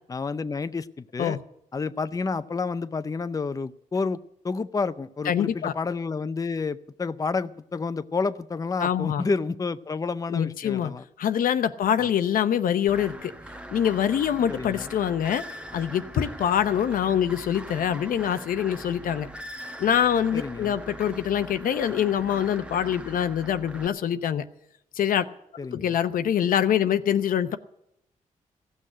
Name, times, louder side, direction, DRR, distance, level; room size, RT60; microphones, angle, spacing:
voice 1, 0.1-1.4 1.7-4.2 4.4-11.0 14.5-14.9 20.3-20.8 25.6-26.0, left 4 dB, 25° left, 0.5 m, -30 dB
voice 2, 5.3-5.7 8.8-9.3 10.3-10.9 11.2-13.3 13.7-15.4 15.7-19.3 19.8-24.4 25.0-25.2 25.7-27.6, left 9 dB, 80° left, 0.8 m, -24 dB
sound 1, 12.9-23.9, right 1 dB, 10° right, 1.0 m, -41 dB
16.0 x 6.5 x 10.0 m
cardioid pair, 75°, 14 cm